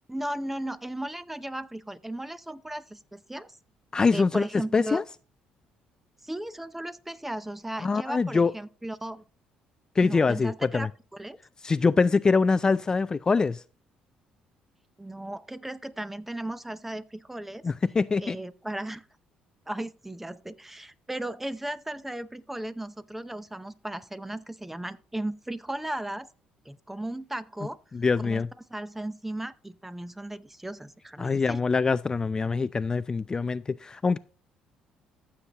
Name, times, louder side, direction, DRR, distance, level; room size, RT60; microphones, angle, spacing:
voice 1, 0.1-3.5 4.1-5.0 6.2-9.2 10.0-11.4 15.0-17.6 18.2-19.0 19.7-26.3 26.7-27.8 28.2-28.4 28.7-31.6, right 1 dB, 10° right, 0.7 m, -36 dB
voice 2, 3.9-4.5 4.7-5.0 7.8-8.5 10.0-10.9 11.6-13.6 17.6-18.4 27.9-28.5 31.2-34.2, left 4 dB, 25° left, 0.3 m, -24 dB
14.5 x 7.1 x 2.9 m
supercardioid pair, 75°, 3 cm